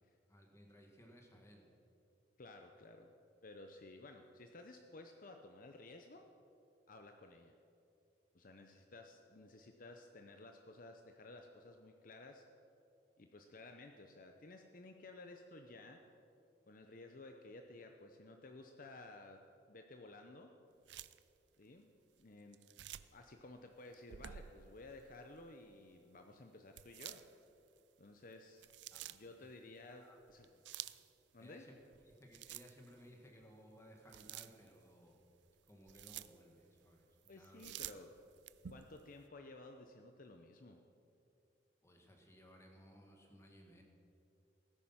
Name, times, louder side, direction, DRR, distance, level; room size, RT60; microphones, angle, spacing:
voice 1, 0.3-1.8 28.9-29.1 29.4-29.5 29.8-30.2 30.5-30.6 31.4-31.7 32.1-35.2 35.7-37.7 41.8-43.8, equal, 15° left, 2 dB, 1.9 m, -60 dB
voice 2, 2.4-3.1 3.4-6.3 6.9-7.5 8.3-12.4 13.2-16.0 16.7-19.4 19.7-20.5 21.6-21.9 22.2-22.6 23.1-27.2 28.0-28.7 29.1-30.5 31.3-31.7 37.3-38.1 38.7-40.8, left 2 dB, 50° left, 5 dB, 0.8 m, -55 dB
sound 1, 20.9-21.2 22.5-23.2 23.9-24.9 26.8-27.7 28.3-29.3 30.3-31.1 31.8-33.0 33.4-33.5 34.1-34.8 35.5-36.4 37.2-39.0, right 12 dB, 75° right, 0.4 m, -50 dB
17.0 x 10.0 x 5.8 m, 2.6 s
head